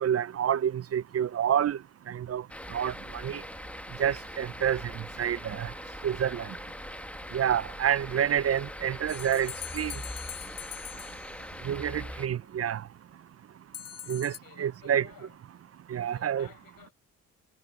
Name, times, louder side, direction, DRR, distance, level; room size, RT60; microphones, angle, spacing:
voice 1, 0.0-1.8 2.1-2.4 2.7-2.9 3.2-3.4 4.0-4.8 5.2-5.7 6.0-6.4 7.3-9.9 11.7-12.8 14.1-14.3 14.6-15.0 15.9-16.5, right 9 dB, 45° right, 0.6 m, -28 dB
sound 1, 2.5-12.3, left 1 dB, 5° left, 1.1 m, -42 dB
sound 2, 9.1-11.6 13.7-14.4, left 10 dB, 45° left, 0.8 m, -42 dB
voice 2, 14.2-15.4 16.1-16.9, left 11 dB, 70° left, 6.7 m, -55 dB
supercardioid pair, 65°, 36 cm